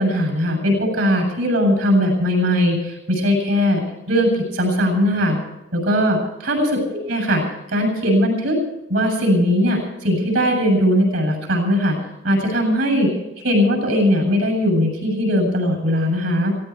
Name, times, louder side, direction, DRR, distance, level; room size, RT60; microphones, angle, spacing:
voice 1, 0.0-5.4 5.7-6.8 7.1-7.4 7.7-8.6 8.9-12.0 12.2-13.1 13.4-16.5, equal, 70° right, 3 dB, 7.7 m, -19 dB
17.5 x 17.0 x 4.8 m, 0.96 s
head